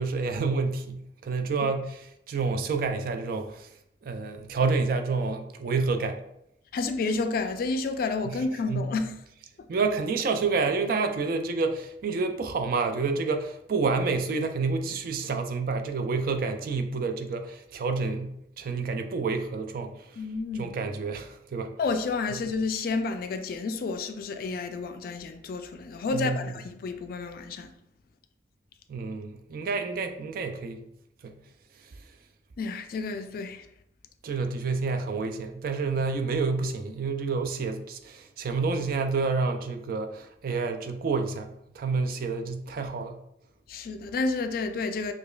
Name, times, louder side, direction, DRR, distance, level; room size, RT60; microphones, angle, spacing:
voice 1, 0.0-3.7 4.0-6.2 8.2-8.4 8.7-8.9 9.7-19.9 20.6-21.7 26.1-26.5 28.9-30.9 31.2-31.4 34.2-43.2, right 4 dB, 55° right, 0.3 m, -29 dB
voice 2, 6.7-9.1 20.2-20.7 21.8-27.7 32.6-33.7 43.7-45.1, left 3 dB, 55° left, 0.3 m, -30 dB
4.9 x 2.3 x 2.3 m
head